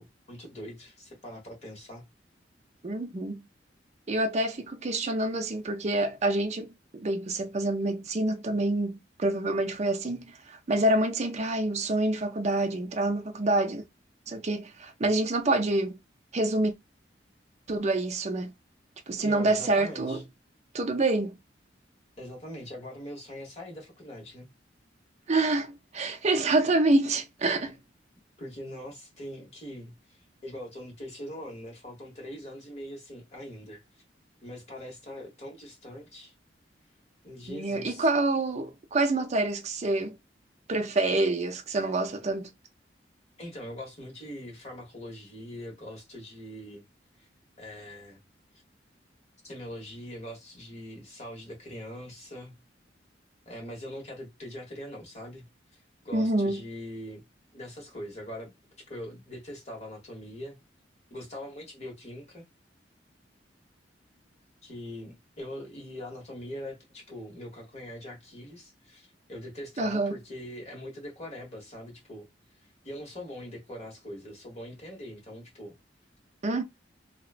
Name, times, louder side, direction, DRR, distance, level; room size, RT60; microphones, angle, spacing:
voice 1, 0.0-2.1 19.2-20.2 22.2-24.5 28.4-33.8 34.4-36.3 37.2-38.1 43.4-46.8 47.2-47.3 47.6-48.2 49.4-52.6 53.4-55.8 56.0-57.2 57.5-58.5 58.9-60.6 61.1-62.5 64.6-72.3 72.8-75.7, equal, 40° left, 1.3 m, -42 dB
voice 2, 2.8-3.4 4.1-13.8 14.3-15.9 16.3-16.7 17.7-18.5 19.1-20.2 20.7-21.4 25.3-27.7 37.5-40.2 40.7-42.5 56.1-56.6 69.8-70.2 76.4-76.6, right 2 dB, 40° right, 0.5 m, -27 dB
2.9 x 2.2 x 2.4 m
head